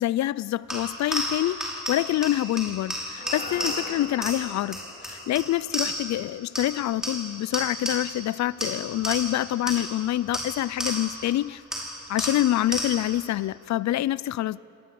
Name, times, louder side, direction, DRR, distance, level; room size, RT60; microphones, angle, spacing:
voice 1, 0.0-11.6 12.1-14.6, left 14 dB, 65° left, 20 dB, 0.5 m, -26 dB
sound 1, 0.7-6.2 6.5-8.3 8.6-11.3 11.7-13.2, equal, ahead, 5.8 m, -33 dB
sound 2, 3.2-7.6, left 2 dB, 30° left, 3.3 m, -43 dB
26.5 x 18.0 x 7.7 m, 2.8 s
cardioid pair, 90°, 30 cm